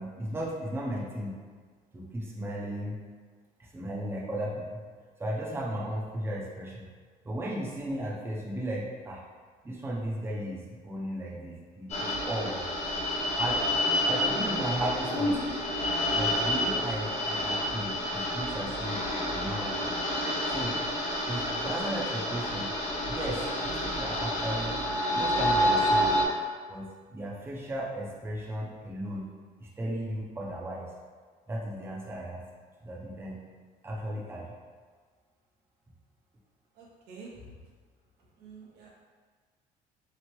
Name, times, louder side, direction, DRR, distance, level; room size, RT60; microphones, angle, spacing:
voice 1, 0.0-1.3 1.9-3.0 3.6-4.8 5.2-6.9 7.2-9.2 9.6-12.7 13.4-13.6 14.1-15.3 16.1-19.0 19.3-19.9 20.5-20.7 21.3-22.7 23.1-24.8 25.1-26.1 26.7-26.9 27.1-29.3 29.6-30.9 31.5-32.4 32.8-33.4 33.8-34.5, right 1 dB, 15° right, -4 dB, 0.5 m, -35 dB
sound 1, 11.9-26.2, left 1 dB, 40° left, 0.8 m, -29 dB
voice 2, 36.7-37.5 38.4-38.9, right 3 dB, 85° right, -3 dB, 0.7 m, -48 dB
2.9 x 2.1 x 2.9 m, 1.5 s
cardioid pair, 110°, 17 cm